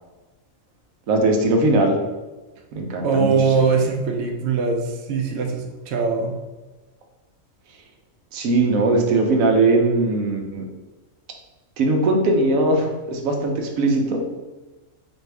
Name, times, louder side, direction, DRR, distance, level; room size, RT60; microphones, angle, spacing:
voice 1, 1.1-2.0 2.7-3.7 8.3-10.6 11.8-14.2, right 2 dB, 90° right, 2 dB, 1.1 m, -20 dB
voice 2, 3.0-6.4, right 5 dB, 65° right, 3 dB, 0.7 m, -21 dB
4.1 x 2.6 x 3.3 m, 1.2 s
omnidirectional pair, 1.4 m